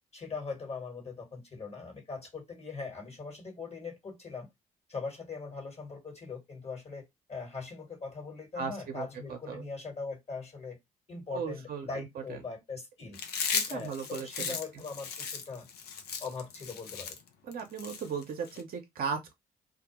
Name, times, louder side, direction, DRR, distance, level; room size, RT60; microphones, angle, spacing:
voice 1, 0.1-4.5 4.9-10.8 11.1-13.2 13.7-15.7 16.2-17.2, left 4 dB, 35° left, 1.4 m, -41 dB
voice 2, 8.6-9.7 11.3-12.4 13.5-14.6 17.4-19.3, right 6 dB, 55° right, 0.7 m, -37 dB
Chewing mastication, 13.1-18.6, left 6 dB, 60° left, 0.6 m, -36 dB
2.3 x 2.1 x 2.9 m
hypercardioid pair, 45°, 19 cm